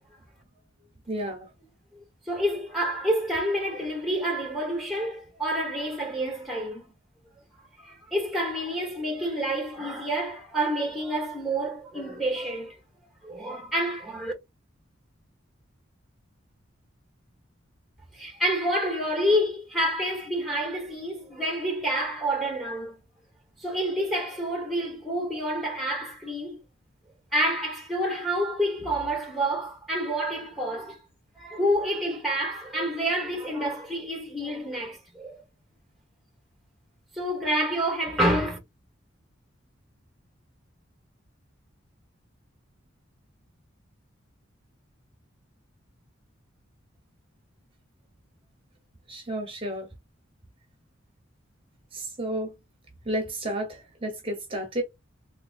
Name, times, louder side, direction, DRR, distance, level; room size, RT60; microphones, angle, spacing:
voice 1, 1.1-1.5 49.1-49.9 51.9-52.5 53.0-54.8, right 1 dB, 25° right, 1.0 m, -31 dB
voice 2, 1.9-6.9 7.8-12.8 13.2-14.3 18.1-23.0 23.6-26.6 27.3-31.0 31.3-35.4 37.1-38.6, equal, ahead, 1.3 m, -28 dB
3.8 x 3.1 x 2.5 m
head